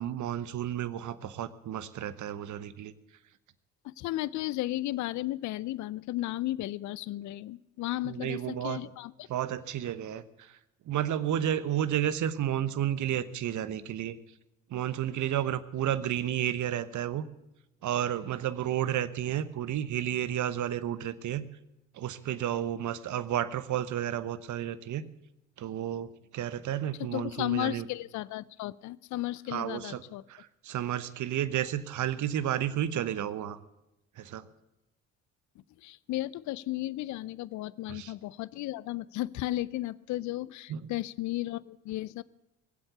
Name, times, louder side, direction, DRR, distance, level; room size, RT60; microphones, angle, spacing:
voice 1, 0.0-2.9 8.0-8.8 9.3-10.6 10.9-14.2 14.7-17.2 17.8-21.5 21.9-25.1 25.6-27.9 29.5-30.0 30.3-33.6 34.2-34.4 37.9-38.1 40.7-40.9, right 11 dB, 50° right, 15 dB, 1.0 m, -32 dB
voice 2, 3.8-9.3 27.1-30.2 35.8-42.2, left 16 dB, 50° left, 21 dB, 0.5 m, -34 dB
20.0 x 7.9 x 8.1 m, 0.92 s
hypercardioid pair, 50°, 38 cm